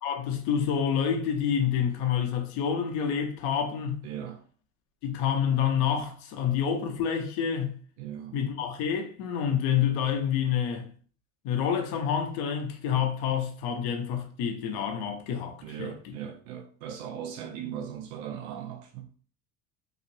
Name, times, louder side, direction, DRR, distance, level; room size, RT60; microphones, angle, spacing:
voice 1, 0.0-4.1 5.0-7.8 8.3-10.9 11.4-15.9, left 8 dB, 60° left, 0.7 m, -28 dB
voice 2, 4.0-4.4 8.0-8.4 15.6-19.1, right 9 dB, 70° right, 0.6 m, -38 dB
3.0 x 2.4 x 2.6 m
hypercardioid pair, 75°, 43 cm